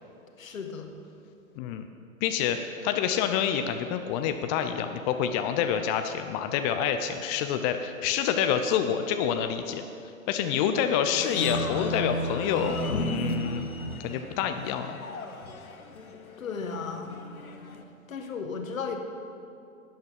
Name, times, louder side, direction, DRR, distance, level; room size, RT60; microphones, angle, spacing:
voice 1, 0.4-0.9 10.5-10.8 16.4-17.2 18.1-19.0, left 5 dB, 70° left, 5 dB, 1.5 m, -35 dB
voice 2, 1.6-1.9 2.2-9.8 10.3-13.7 14.0-15.0, left 8 dB, 30° left, 7 dB, 0.5 m, -27 dB
sound 1, 11.2-17.8, left 1 dB, 90° left, 1.0 m, -34 dB
11.5 x 8.8 x 5.3 m, 2.5 s
figure-of-eight pair, 100°, 41 cm